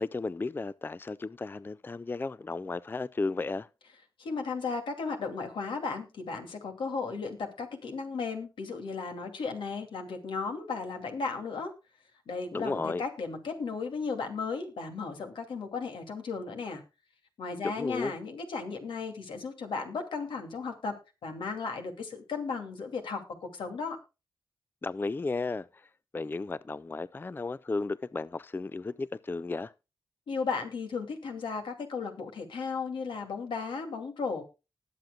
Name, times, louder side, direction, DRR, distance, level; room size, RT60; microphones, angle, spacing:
voice 1, 0.0-3.7 12.5-13.0 17.6-18.1 24.8-25.7 26.1-29.7, left 3 dB, 25° left, 0.4 m, -34 dB
voice 2, 4.2-11.7 12.3-16.8 17.4-20.9 21.2-24.0 30.3-34.4, left 4 dB, 90° left, 2.5 m, -35 dB
19.5 x 7.6 x 2.3 m
cardioid pair, 75°, 8 cm